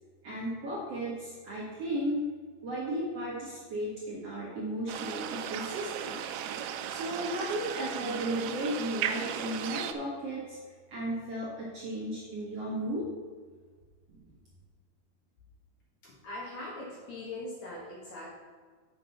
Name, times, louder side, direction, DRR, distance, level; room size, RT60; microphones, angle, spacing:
voice 1, 0.2-2.3 2.6-6.2 6.9-10.6 10.9-13.1 14.1-14.2, right 1 dB, 50° right, -6 dB, 2.1 m, -35 dB
sound 1, 4.9-9.9, right 9 dB, 80° right, 2.4 m, -36 dB
voice 2, 16.0-18.4, left 2 dB, 55° left, -5 dB, 2.5 m, -41 dB
7.9 x 6.3 x 5.8 m, 1.5 s
omnidirectional pair, 4.8 m